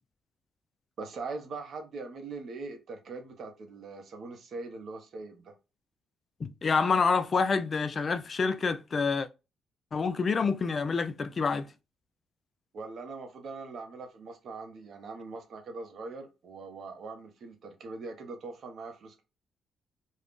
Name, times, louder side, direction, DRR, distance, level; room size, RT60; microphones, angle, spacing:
voice 1, 1.0-5.5 12.7-19.2, right 3 dB, 60° right, 0.8 m, -41 dB
voice 2, 6.4-9.3 9.9-11.7, left 5 dB, 40° left, 0.3 m, -27 dB
2.5 x 2.3 x 3.5 m
cardioid pair, 90°, 0 cm